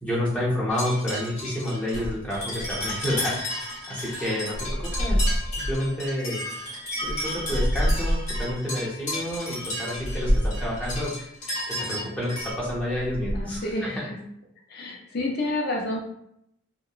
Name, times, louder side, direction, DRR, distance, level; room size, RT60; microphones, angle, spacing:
voice 1, 0.0-4.7 5.0-5.3 5.7-6.4 7.0-14.1, left 1 dB, 5° left, -7 dB, 0.7 m, -29 dB
sound 1, 0.7-12.5, left 1 dB, 35° left, 0.8 m, -33 dB
sound 2, 1.9-3.1 4.0-5.9 6.3-8.6 9.2-9.4 9.9-11.1 11.6-12.0 12.4-13.7, equal, 85° left, 0.7 m, -28 dB
voice 2, 13.3-14.2 14.7-16.0, left 1 dB, 50° left, -1 dB, 0.4 m, -29 dB
2.8 x 2.1 x 2.3 m, 0.75 s
head